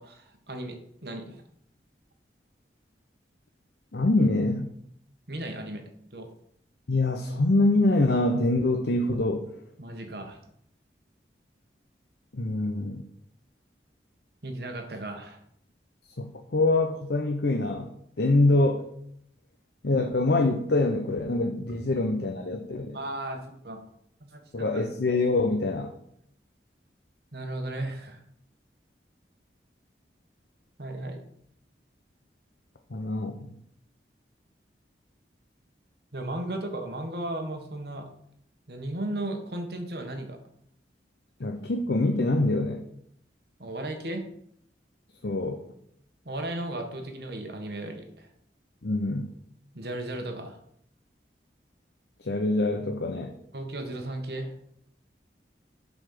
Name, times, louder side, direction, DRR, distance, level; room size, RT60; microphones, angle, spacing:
voice 1, 0.0-1.4 5.3-6.3 9.8-10.4 14.4-15.4 21.7-21.8 22.9-23.8 24.2-24.8 27.3-28.2 30.8-31.2 36.1-38.1 38.7-40.4 43.6-44.3 46.2-48.3 49.7-50.6 53.5-54.5, right 1 dB, 60° right, 4 dB, 1.4 m, -35 dB
voice 2, 3.9-4.7 6.9-9.5 12.3-13.1 16.2-18.8 19.8-23.0 24.5-25.9 32.9-33.5 41.4-42.8 45.2-45.6 48.8-49.3 52.2-53.3, left 2 dB, 70° left, 5 dB, 0.7 m, -25 dB
7.5 x 4.2 x 6.6 m, 0.70 s
head